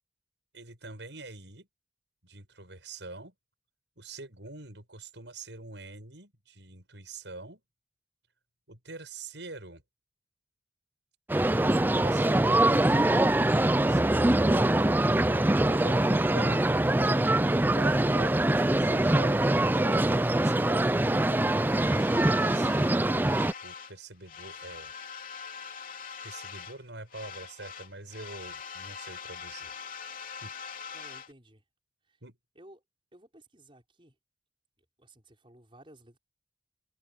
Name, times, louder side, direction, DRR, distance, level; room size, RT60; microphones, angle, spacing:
voice 1, 0.5-1.7 2.2-3.3 4.0-7.6 8.7-9.8 11.6-13.0 15.7-21.4 21.9-24.9 26.2-29.7 30.4-30.5 32.2-32.4, right 2 dB, 85° right, 6.8 m, -45 dB
sound 1, 11.3-23.5, right 1 dB, 10° right, 0.4 m, -24 dB
sound 2, 21.6-24.0 24.2-26.8 27.1-31.3, left 6 dB, 50° left, 3.0 m, -43 dB
voice 2, 30.9-31.6 32.0-32.2 32.6-32.8 33.1-34.2 35.0-36.2, right 1 dB, 30° right, 5.9 m, -55 dB
head